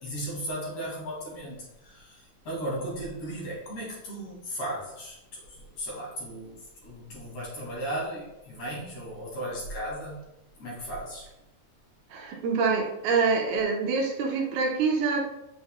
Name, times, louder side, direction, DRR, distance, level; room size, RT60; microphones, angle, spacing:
voice 1, 0.0-5.2 5.5-6.6 6.8-10.2 10.6-11.2, right 1 dB, 45° left, -5 dB, 2.8 m, -36 dB
voice 2, 12.1-15.3, right 4 dB, 75° right, 0 dB, 2.5 m, -26 dB
7.8 x 6.2 x 2.2 m, 0.90 s
omnidirectional pair, 4.9 m